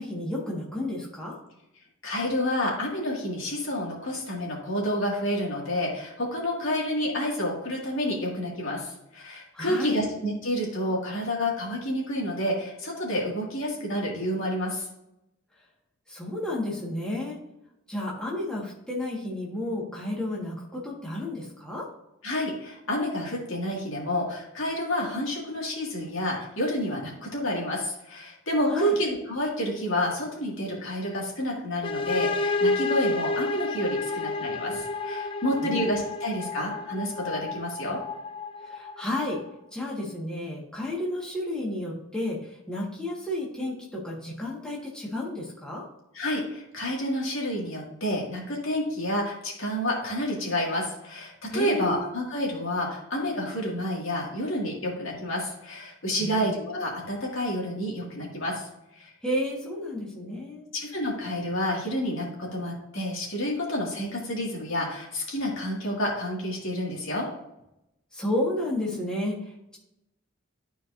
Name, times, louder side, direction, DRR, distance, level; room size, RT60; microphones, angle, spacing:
voice 1, 0.0-1.3 9.5-10.0 16.1-17.4 17.9-21.9 28.6-28.9 35.6-35.9 38.6-39.4 39.7-45.8 51.5-52.1 56.2-56.5 59.2-60.6 68.1-69.8, left 1 dB, 5° left, -5 dB, 1.5 m, -32 dB
voice 2, 2.0-14.9 22.2-38.0 46.1-58.7 58.9-59.1 60.7-67.3, left 1 dB, 70° left, -2 dB, 2.1 m, -29 dB
sound 1, 31.8-39.5, left 3 dB, 25° left, 0.3 m, -30 dB
12.0 x 4.5 x 2.6 m, 0.85 s
head